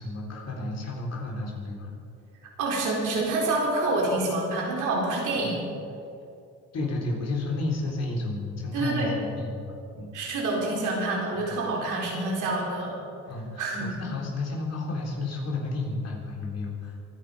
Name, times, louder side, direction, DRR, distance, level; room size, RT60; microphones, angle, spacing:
voice 1, 0.0-1.9 5.3-5.5 6.7-10.1 11.4-11.5 13.3-17.0, left 2 dB, 55° left, -1 dB, 4.1 m, -32 dB
voice 2, 2.6-5.7 8.7-9.1 10.1-13.0 13.6-13.9, right 2 dB, 85° right, -2 dB, 4.3 m, -27 dB
23.5 x 9.7 x 5.2 m, 2.5 s
cardioid pair, 90°, 30 cm